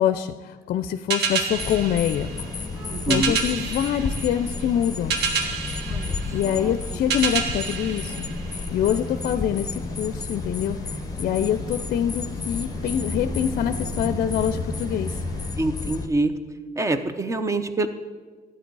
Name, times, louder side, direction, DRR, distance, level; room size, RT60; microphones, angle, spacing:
voice 1, 0.0-2.3 3.1-5.2 6.3-8.3 8.7-10.8 11.2-15.2, left 10 dB, 60° left, 10 dB, 0.5 m, -25 dB
sound 1, 1.1-9.0, right 5 dB, 80° right, 1.2 m, -29 dB
sound 2, 1.5-16.1, left 4 dB, 20° left, 1.0 m, -32 dB
sound 3, 1.7-15.5, right 1 dB, 60° right, 2.8 m, -38 dB
voice 2, 2.9-3.4 5.9-6.2 6.4-6.7 15.6-16.3 16.8-17.9, right 2 dB, 20° right, 11 dB, 0.8 m, -25 dB
12.5 x 8.9 x 4.7 m, 1.4 s
cardioid pair, 110°, 17 cm